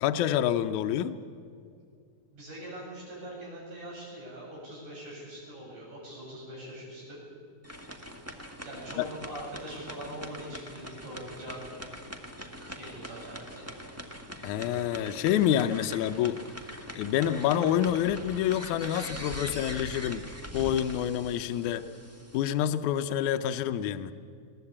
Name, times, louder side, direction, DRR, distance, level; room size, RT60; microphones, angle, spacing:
voice 1, 0.0-1.2 9.0-9.1 14.4-16.4 17.0-20.2 20.5-21.8 22.3-24.1, left 10 dB, 80° left, 8 dB, 2.1 m, -27 dB
voice 2, 2.3-7.2 8.6-11.6 12.7-13.7, right 1 dB, 85° right, -4 dB, 9.4 m, -42 dB
sound 1, 7.6-22.5, equal, 10° right, 1.0 m, -43 dB
22.0 x 18.0 x 8.6 m, 2.3 s
omnidirectional pair, 3.4 m